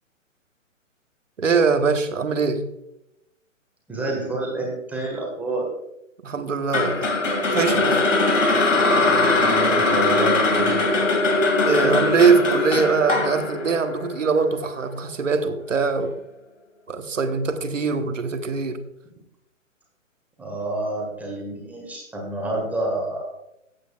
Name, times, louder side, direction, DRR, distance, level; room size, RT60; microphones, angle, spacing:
voice 1, 1.4-2.7 6.2-7.2 7.5-8.0 8.6-8.7 11.6-16.1 16.9-18.8, right 5 dB, 65° right, 1.3 m, -22 dB
voice 2, 3.9-5.6 9.4-10.9 20.4-23.3, right 2 dB, 5° right, 1.7 m, -28 dB
sound 1, 6.7-14.9, left 2 dB, 65° left, 2.3 m, -21 dB
15.5 x 8.4 x 2.4 m
figure-of-eight pair, 130°, 40 cm